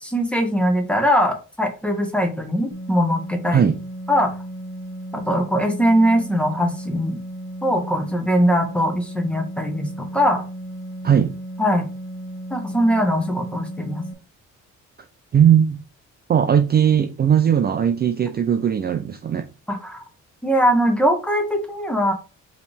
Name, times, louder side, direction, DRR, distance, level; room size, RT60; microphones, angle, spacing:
voice 1, 0.0-3.7 4.1-4.3 5.1-7.2 7.6-10.4 11.6-11.9 12.5-14.0 19.7-20.0 20.4-22.1, equal, 5° left, 1.2 m, -21 dB
sound 1, 2.7-14.1, right 1 dB, 40° left, 1.5 m, -35 dB
voice 2, 15.3-15.8 16.3-19.5, right 8 dB, 35° right, 0.4 m, -18 dB
4.9 x 3.3 x 3.3 m
cardioid pair, 90°, 30 cm